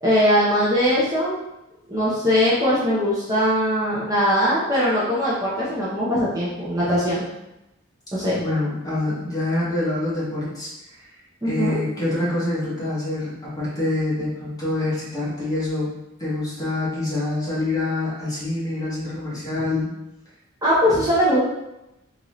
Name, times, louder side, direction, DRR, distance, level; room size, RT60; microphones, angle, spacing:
voice 1, 0.0-1.4 1.9-7.2 8.1-8.4 11.4-11.8 20.6-21.4, equal, 15° right, -9 dB, 0.7 m, -20 dB
voice 2, 8.4-10.7 11.4-15.9 16.2-19.9, left 2 dB, 20° left, -9 dB, 1.3 m, -26 dB
3.9 x 2.7 x 3.1 m, 0.92 s
head